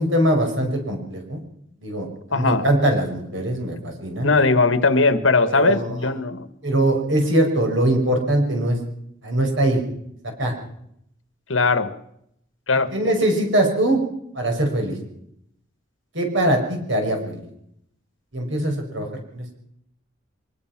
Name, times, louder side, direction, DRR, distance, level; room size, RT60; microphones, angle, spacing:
voice 1, 0.0-1.4 1.8-4.3 5.5-6.0 6.6-8.8 9.2-9.8 10.2-10.5 12.9-14.0 14.3-15.0 16.1-17.4 18.3-19.1 19.3-19.5, right 1 dB, 75° right, 3 dB, 5.6 m, -22 dB
voice 2, 2.3-2.6 4.2-6.5 11.5-11.9 12.7-12.9, left 3 dB, 80° left, 12 dB, 1.5 m, -19 dB
23.0 x 20.5 x 6.0 m, 0.75 s
head